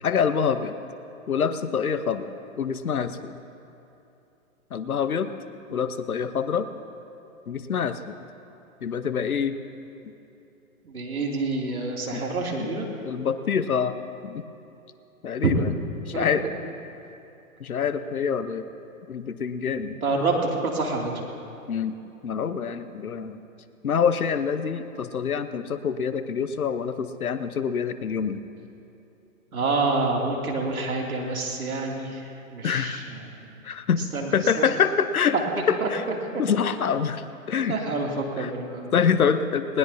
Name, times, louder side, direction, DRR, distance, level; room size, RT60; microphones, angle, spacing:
voice 1, 0.0-0.7 1.3-3.3 4.7-5.3 5.7-6.7 7.5-8.2 8.8-9.6 12.1-12.2 12.6-13.9 14.2-14.4 15.2-15.7 16.1-16.5 17.6-18.7 19.1-20.0 21.7-23.4 23.8-28.4 32.6-33.0 33.6-34.0 34.3-35.4 35.7-36.0 36.4-37.8 38.4-38.5 38.9-39.8, left 7 dB, 85° left, 11 dB, 1.0 m, -26 dB
voice 2, 10.8-12.9 16.1-16.3 20.0-21.1 29.5-33.2 34.1-34.3 34.6-34.7 35.8-35.9 37.7-38.9, right 3 dB, 85° right, -1 dB, 2.9 m, -27 dB
20.0 x 19.0 x 2.8 m, 2.9 s
hypercardioid pair, 130°, 42 cm